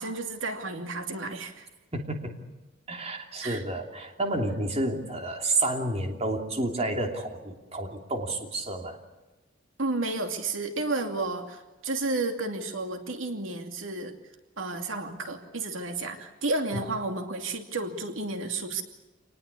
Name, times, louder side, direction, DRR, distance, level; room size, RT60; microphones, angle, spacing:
voice 1, 0.0-1.7 3.4-3.6 9.8-14.2 14.6-18.8, right 2 dB, 85° right, 5 dB, 2.6 m, -32 dB
voice 2, 1.9-2.3 2.9-9.0, right 2 dB, 35° right, 3 dB, 3.0 m, -30 dB
27.5 x 19.5 x 8.5 m, 1.1 s
head